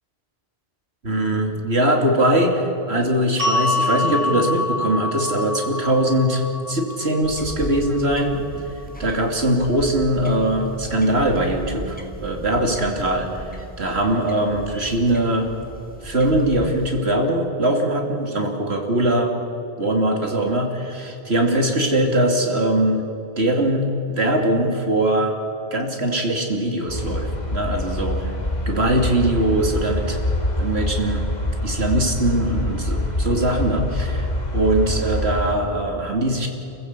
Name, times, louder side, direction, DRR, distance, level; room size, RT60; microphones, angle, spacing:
voice 1, 1.0-8.5 9.0-15.5 16.0-19.3 19.8-23.0 23.4-25.4 25.7-28.3 28.7-30.2 30.6-31.3 31.6-34.3 34.5-36.5, right 1 dB, 85° right, 2 dB, 3.0 m, -21 dB
sound 1, 3.4-9.6, left 2 dB, 60° right, 4.1 m, -27 dB
sound 2, 7.2-17.0, equal, 10° left, 2.4 m, -36 dB
sound 3, 26.9-35.6, left 1 dB, 45° left, 2.6 m, -25 dB
28.5 x 15.5 x 8.5 m, 2.9 s
omnidirectional pair, 1.1 m